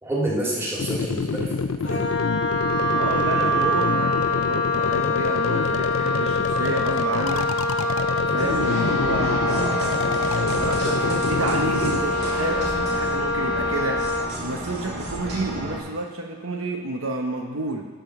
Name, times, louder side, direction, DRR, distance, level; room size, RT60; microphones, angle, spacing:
voice 1, 0.0-2.2, right 1 dB, 10° right, -6 dB, 2.2 m, -28 dB
sound 1, 0.8-12.0, left 4 dB, 80° left, 0.5 m, -27 dB
Wind instrument woodwind instrument, 1.8-14.3, left 2 dB, 60° left, 0.8 m, -25 dB
voice 2, 2.9-7.6 8.3-10.0 10.5-14.0 14.4-17.8, right 2 dB, 85° right, 2 dB, 1.1 m, -30 dB
sound 2, 8.4-15.8, right 1 dB, 50° right, 2.4 m, -31 dB
11.5 x 5.2 x 6.0 m, 1.4 s
head